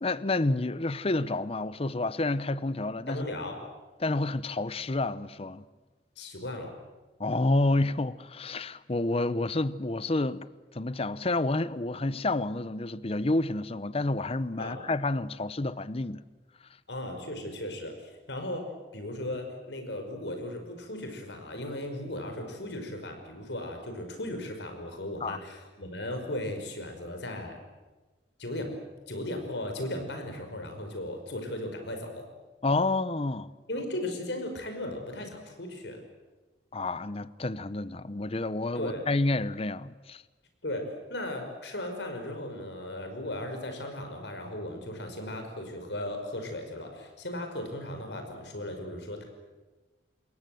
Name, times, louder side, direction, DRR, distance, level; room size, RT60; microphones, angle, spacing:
voice 1, 0.0-3.3 4.0-5.6 7.2-10.5 10.7-16.2 25.2-25.4 32.6-33.5 36.7-40.2, left 2 dB, 35° left, 0.8 m, -29 dB
voice 2, 3.1-3.6 6.2-6.8 14.6-14.8 16.9-18.6 18.9-27.6 28.4-28.7 29.1-32.3 33.7-36.0 38.7-39.0 40.6-49.2, left 1 dB, 80° left, 5.4 m, -36 dB
27.5 x 21.5 x 7.8 m
head